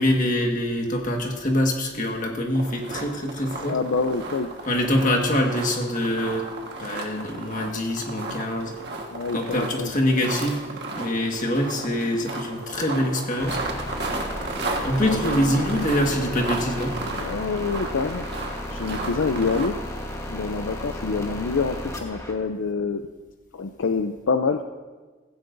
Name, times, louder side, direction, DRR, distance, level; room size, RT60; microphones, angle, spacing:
voice 1, 0.0-3.8 4.7-6.5 6.8-8.7 9.3-10.6 11.0-13.6 14.8-17.0, left 1 dB, 40° left, 2 dB, 1.6 m, -24 dB
sound 1, 2.5-19.7, right 2 dB, 55° right, 1.5 m, -34 dB
voice 2, 3.7-4.5 9.1-9.9 15.0-15.7 17.1-18.3 18.7-19.8 20.3-23.1 23.5-24.6, left 4 dB, 80° left, 7 dB, 0.5 m, -26 dB
sound 2, 13.4-22.3, left 1 dB, 15° left, 1.2 m, -34 dB
16.5 x 16.0 x 2.6 m, 1.3 s
head